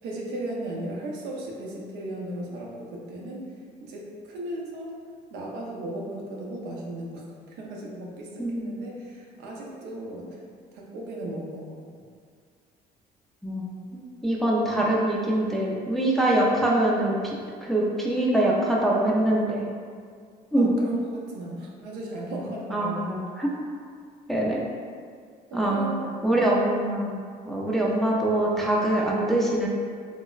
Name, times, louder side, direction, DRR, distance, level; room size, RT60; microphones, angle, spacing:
voice 1, 0.0-3.5 3.8-4.9 5.3-10.4 10.7-11.9 20.6-23.2 25.5-26.4 27.7-28.0, right 1 dB, 85° right, -2 dB, 0.5 m, -36 dB
voice 2, 8.4-8.7 13.4-17.4 17.6-19.6 20.5-20.7 22.7-23.5 24.3-24.6 25.5-25.9 26.2-29.7, right 1 dB, ahead, -4 dB, 0.3 m, -24 dB
3.1 x 2.0 x 2.3 m, 2.1 s
cardioid pair, 110°, 17 cm